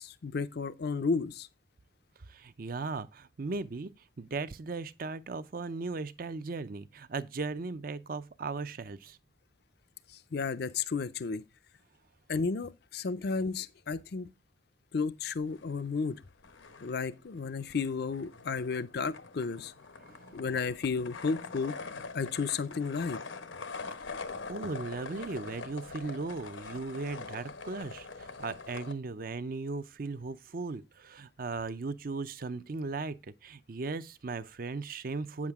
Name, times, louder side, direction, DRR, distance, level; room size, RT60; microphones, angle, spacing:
voice 1, 0.0-1.5 10.1-11.4 12.3-14.3 14.9-16.2 16.8-19.7 20.3-21.8 22.1-23.2, left 4 dB, 55° left, 0.5 m, -33 dB
voice 2, 2.3-9.2 20.0-20.4 24.5-35.5, right 3 dB, 50° right, 0.5 m, -37 dB
sound 1, 15.4-16.1 16.4-28.9, left 4 dB, 85° left, 1.0 m, -44 dB
8.8 x 7.3 x 3.5 m
head